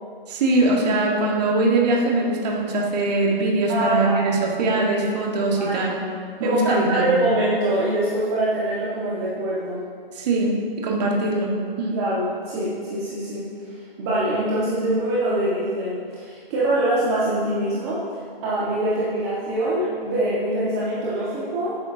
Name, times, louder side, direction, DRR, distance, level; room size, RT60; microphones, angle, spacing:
voice 1, 0.3-6.0 6.4-7.2 10.1-12.0, right 2 dB, 45° right, -1 dB, 1.7 m, -22 dB
voice 2, 3.7-4.3 5.6-5.9 6.4-9.8 11.9-18.0 18.4-21.8, right 1 dB, 25° right, -8 dB, 1.6 m, -24 dB
12.0 x 9.5 x 2.8 m, 2.1 s
hypercardioid pair, 150°, 29 cm